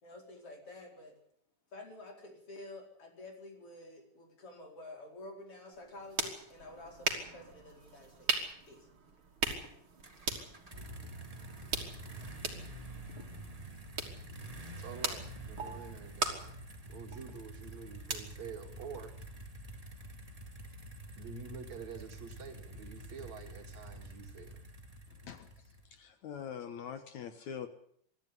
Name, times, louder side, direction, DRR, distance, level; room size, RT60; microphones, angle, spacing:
voice 1, 0.0-1.2 1.7-8.3 8.7-8.9, left 2 dB, 45° left, 2 dB, 5.5 m, -50 dB
sound 1, 5.7-19.4, right 4 dB, 40° right, 3.4 m, -40 dB
sound 2, 10.0-26.0, right 1 dB, 15° right, 1.7 m, -48 dB
voice 2, 14.7-16.6 16.9-19.2 21.2-24.6, right 6 dB, 65° right, 5 dB, 3.1 m, -47 dB
voice 3, 25.1-25.5 25.9-27.7, left 8 dB, 70° left, 9 dB, 2.5 m, -43 dB
23.5 x 13.5 x 9.6 m, 0.66 s
omnidirectional pair, 3.6 m